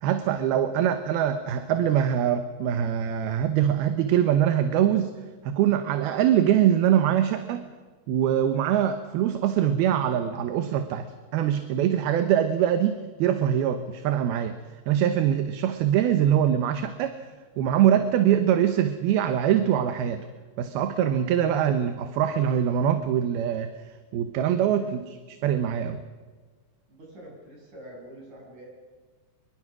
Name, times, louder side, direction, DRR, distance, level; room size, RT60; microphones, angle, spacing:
voice 1, 0.0-5.1 5.4-7.6 8.1-11.1 11.3-14.5 14.9-17.3 17.6-20.3 20.6-23.7 24.1-26.0, right 10 dB, 75° right, 9 dB, 2.9 m, -23 dB
voice 2, 26.9-28.7, right 1 dB, 50° right, -1 dB, 8.5 m, -46 dB
25.5 x 23.0 x 6.2 m, 1.4 s
omnidirectional pair, 4.6 m